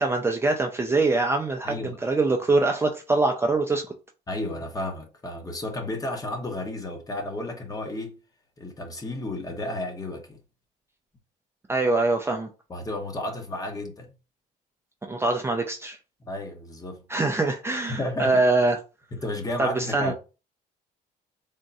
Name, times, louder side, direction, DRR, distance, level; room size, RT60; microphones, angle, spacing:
voice 1, 0.0-3.9 11.7-12.5 15.1-16.0 17.1-18.8 19.6-20.1, right 3 dB, 15° right, 0.5 m, -23 dB
voice 2, 1.6-2.0 4.3-8.2 8.6-10.4 12.7-14.1 16.2-17.0 17.9-18.4 19.1-20.1, left 1 dB, 20° left, 0.9 m, -32 dB
3.6 x 2.1 x 4.0 m
cardioid pair, 110°, 17 cm